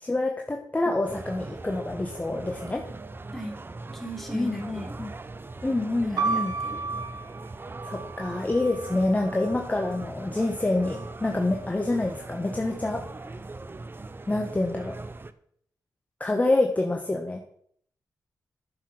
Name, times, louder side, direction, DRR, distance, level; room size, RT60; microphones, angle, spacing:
voice 1, 0.0-2.8 4.3-5.1 5.6-6.5 7.8-13.0 14.3-15.0 16.2-17.4, left 2 dB, 20° left, 2 dB, 1.5 m, -27 dB
sound 1, 1.0-15.3, right 3 dB, 30° right, 0.8 m, -40 dB
voice 2, 3.9-4.9 6.0-6.8, right 1 dB, 5° left, 2 dB, 3.6 m, -38 dB
sound 2, 6.2-10.0 10.8-11.5, right 4 dB, 75° right, 1.8 m, -34 dB
10.5 x 6.7 x 6.0 m, 0.65 s
cardioid pair, 60°, 7 cm